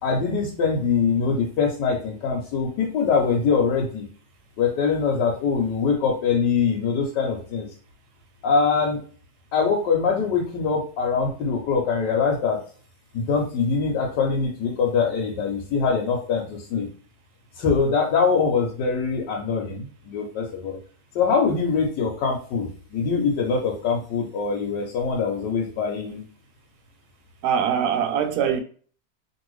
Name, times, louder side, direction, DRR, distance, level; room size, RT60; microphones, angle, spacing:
voice 1, 0.0-4.1 4.6-7.7 8.4-9.0 9.5-12.6 13.1-16.9 17.5-20.8 21.1-26.2, left 5 dB, 75° left, 1.3 m, -23 dB
voice 2, 27.4-28.6, right 8 dB, 70° right, 1.0 m, -22 dB
2.8 x 2.7 x 3.1 m
omnidirectional pair, 1.9 m